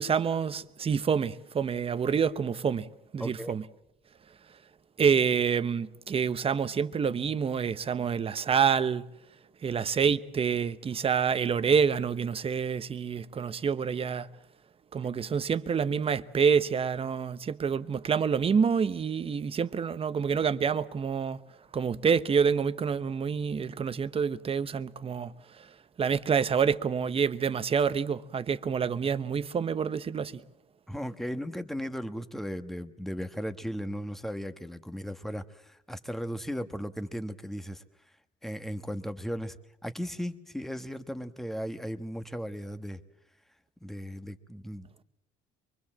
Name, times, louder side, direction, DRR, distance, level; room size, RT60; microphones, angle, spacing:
voice 1, 0.0-3.6 4.5-4.6 5.0-9.0 9.6-14.3 14.9-21.4 21.7-30.4, right 6 dB, 35° right, 1.0 m, -27 dB
voice 2, 3.2-3.5 30.9-37.8 38.4-39.6 39.8-43.0 43.8-45.0, equal, ahead, 1.3 m, -36 dB
24.0 x 23.5 x 7.5 m
cardioid pair, 110°, 17 cm